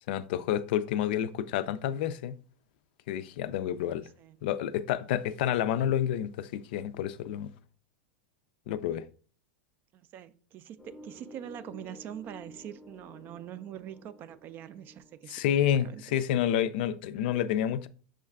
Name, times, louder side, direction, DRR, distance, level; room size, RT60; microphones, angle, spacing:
voice 1, 0.1-2.4 3.1-4.1 4.4-7.5 8.7-9.0 15.3-17.9, left 10 dB, 65° left, 0.3 m, -29 dB
voice 2, 9.9-16.2, right 10 dB, 35° right, 0.3 m, -44 dB
sound 1, 10.8-15.7, equal, 10° left, 0.7 m, -52 dB
6.3 x 2.3 x 3.5 m
supercardioid pair, 130°, 6 cm